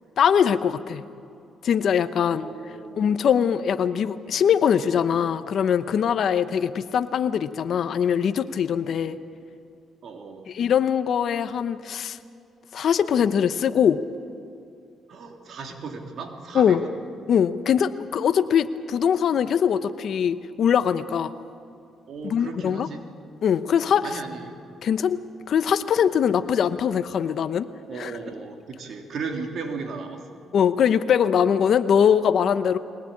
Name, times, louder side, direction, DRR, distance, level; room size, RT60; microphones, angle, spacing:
voice 1, 0.2-1.0 1.6-2.4 3.0-9.2 10.5-12.2 12.7-14.0 16.5-16.8 17.3-21.3 22.2-22.9 23.4-24.2 24.8-25.2 25.5-27.7 28.0-28.1 30.5-32.8, left 8 dB, 60° left, 11 dB, 0.9 m, -22 dB
voice 2, 2.3-3.2 10.0-10.5 15.1-16.9 22.1-23.0 24.0-24.6 27.9-30.5, right 4 dB, 60° right, 3 dB, 3.1 m, -36 dB
21.5 x 19.0 x 8.7 m, 2.5 s
cardioid pair, 90°, 0 cm